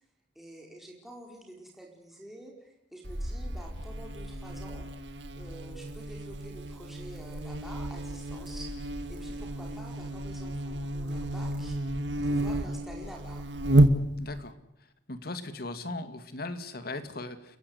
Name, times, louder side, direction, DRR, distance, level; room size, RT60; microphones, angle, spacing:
voice 1, 0.3-4.9 5.4-11.8 12.2-13.4, right 1 dB, ahead, -1 dB, 4.7 m, -48 dB
Buzz, 3.0-14.4, right 1 dB, 85° right, 2.0 m, -30 dB
voice 2, 14.2-14.6 15.1-17.6, left 2 dB, 60° left, 10 dB, 2.3 m, -38 dB
30.0 x 16.0 x 8.3 m, 0.78 s
head